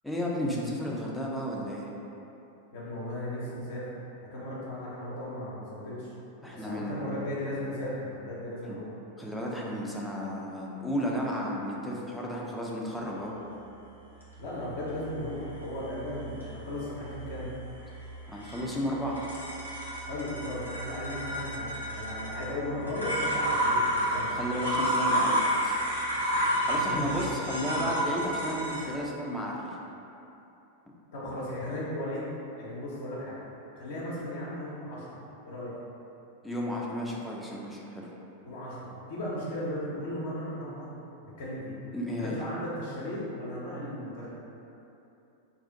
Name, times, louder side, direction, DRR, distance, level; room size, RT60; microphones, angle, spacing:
voice 1, 0.0-1.9 6.4-7.2 8.7-8.8 9.2-13.3 18.3-19.2 24.3-25.7 26.6-29.7 36.4-38.1 41.9-42.4, equal, 5° left, -4 dB, 0.5 m, -33 dB
voice 2, 2.7-4.0 4.3-6.1 6.5-8.9 14.4-17.5 20.1-24.4 26.7-28.1 31.1-32.3 32.5-33.4 33.7-35.2 35.4-35.7 38.4-41.0 41.2-41.8 42.2-44.3, left 1 dB, 55° left, -8 dB, 0.6 m, -36 dB
sound 1, 14.2-28.9, equal, 85° right, 0.7 m, -31 dB
2.6 x 2.4 x 3.8 m, 2.9 s
figure-of-eight pair, 90°, 0 cm